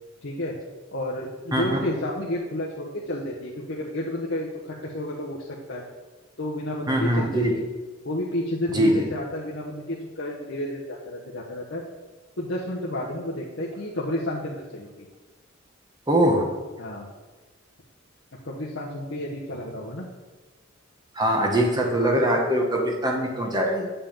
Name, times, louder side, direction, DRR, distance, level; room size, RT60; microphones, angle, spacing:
voice 1, 0.2-0.6 0.9-5.8 6.4-7.7 8.0-11.8 12.4-15.1 16.8-17.1 18.4-20.1, left 1 dB, 70° left, -5 dB, 1.3 m, -31 dB
voice 2, 6.9-7.5 8.7-9.1 16.1-16.4 21.1-23.9, right 1 dB, 20° right, 1 dB, 1.3 m, -22 dB
8.6 x 5.6 x 7.3 m, 1.3 s
head